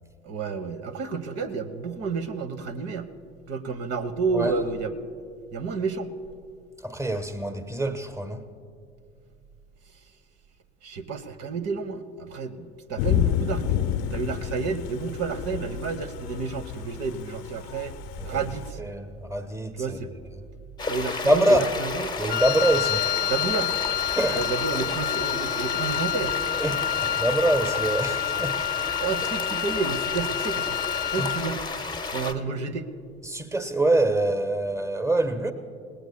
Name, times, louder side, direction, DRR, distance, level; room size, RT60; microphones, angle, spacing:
voice 1, 0.2-3.1 3.5-5.1 5.5-6.1 10.8-13.7 14.1-18.0 18.2-18.8 19.8-20.1 20.9-22.1 23.3-23.8 24.3-26.4 29.0-30.8 31.1-31.6 32.1-32.9, right 5 dB, 50° right, 1.1 m, -30 dB
voice 2, 6.8-8.4 18.2-18.5 18.8-20.0 21.2-21.8 22.2-23.2 24.1-24.5 26.6-28.9 31.1-31.3 33.2-35.5, right 1 dB, 10° right, 1.3 m, -25 dB
Thunder / Rain, 13.0-18.7, left 10 dB, 60° left, 0.9 m, -29 dB
sound 1, 20.8-32.3, left 3 dB, 15° left, 1.0 m, -32 dB
Wind instrument woodwind instrument, 22.3-31.5, left 11 dB, 30° left, 0.5 m, -28 dB
30.0 x 18.5 x 2.3 m
figure-of-eight pair, 65°, 33 cm